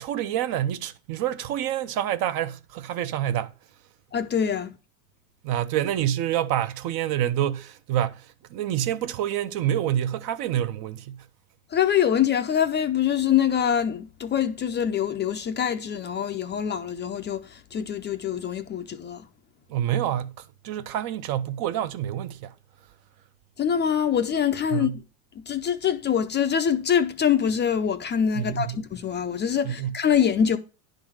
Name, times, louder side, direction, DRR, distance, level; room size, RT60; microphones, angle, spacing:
voice 1, 0.0-3.5 5.4-11.2 19.7-22.5 24.7-24.9 28.4-28.8 29.6-29.9, right 11 dB, 50° right, 0.7 m, -27 dB
voice 2, 4.1-4.8 11.7-19.3 23.6-25.0 25.4-30.6, left 8 dB, 25° left, 0.5 m, -24 dB
10.5 x 4.0 x 6.1 m
supercardioid pair, 125°, 47 cm